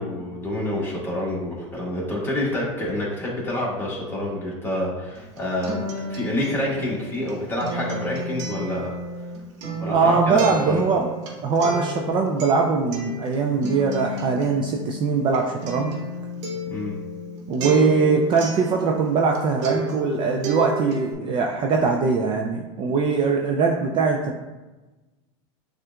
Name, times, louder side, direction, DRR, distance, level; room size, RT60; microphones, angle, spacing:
voice 1, 0.0-8.9 9.8-10.4 10.6-10.8 16.7-16.9, left 1 dB, 15° left, -5 dB, 1.4 m, -28 dB
Acoustic guitar, 5.1-19.4 19.6-21.1, right 1 dB, 65° right, 1.0 m, -32 dB
voice 2, 9.9-11.1 11.4-16.0 17.5-24.4, right 4 dB, 30° right, 1 dB, 0.4 m, -21 dB
6.4 x 2.4 x 2.3 m, 1.1 s
supercardioid pair, 120°, 16 cm